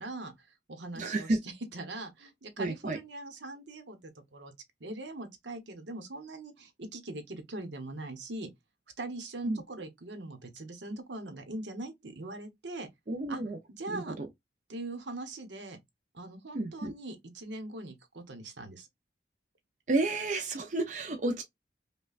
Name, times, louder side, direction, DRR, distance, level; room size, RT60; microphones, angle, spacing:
voice 1, 0.0-4.5 4.8-8.5 9.0-12.9 13.3-13.4 13.8-14.2 14.7-15.8 16.1-18.9, right 2 dB, 75° right, 0.9 m, -41 dB
voice 2, 1.0-1.4 2.6-3.0 9.4-9.6 13.1-13.6 13.9-14.3 16.5-16.9 19.9-21.4, right 2 dB, 40° right, 0.5 m, -31 dB
5.4 x 2.3 x 2.4 m
head